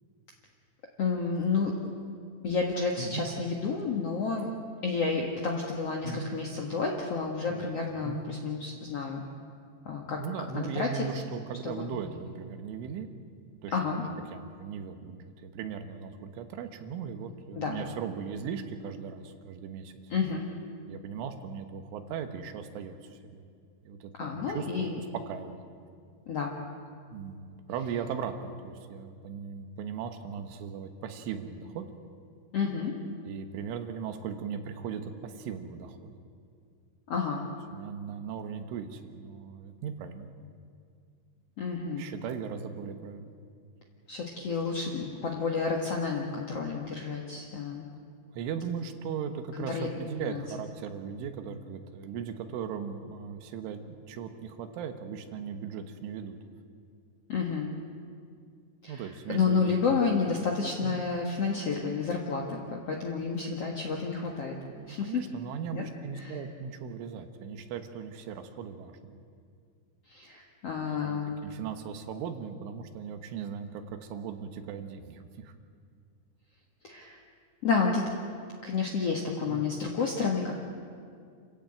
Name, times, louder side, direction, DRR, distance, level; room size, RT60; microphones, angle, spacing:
voice 1, 1.0-1.8 2.4-4.5 4.8-9.2 9.8-10.2 10.5-11.0 11.6-11.9 13.7-14.0 17.5-17.8 20.1-20.4 24.2-25.0 26.3-26.6 32.5-32.9 37.1-37.5 41.6-42.1 44.1-47.9 49.7-49.9 50.3-50.4 57.3-57.7 58.8-64.5 64.9-65.2 65.7-65.8 66.1-66.4 70.1-71.4 76.8-77.2 77.6-78.1 78.6-80.5, left 5 dB, 70° left, 0 dB, 1.4 m, -30 dB
voice 2, 10.2-13.1 13.6-19.9 20.9-23.4 23.8-25.6 27.1-31.9 33.3-36.2 37.7-40.3 42.0-43.3 48.3-56.3 58.9-60.0 60.5-61.0 64.7-69.2 70.7-75.5 79.5-79.6, right 7 dB, 85° right, 7 dB, 3.8 m, -38 dB
27.5 x 15.0 x 9.0 m, 2.2 s
omnidirectional pair, 5.5 m